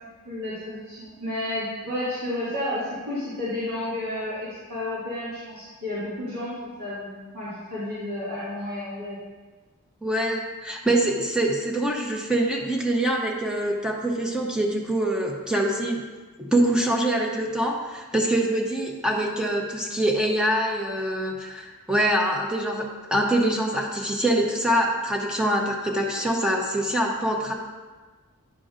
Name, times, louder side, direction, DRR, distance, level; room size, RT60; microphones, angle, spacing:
voice 1, 0.3-9.2, left 1 dB, 80° right, -12 dB, 2.3 m, -31 dB
voice 2, 10.0-16.0 16.4-27.5, right 1 dB, 5° right, 0 dB, 0.8 m, -24 dB
9.8 x 6.7 x 2.5 m, 1.3 s
head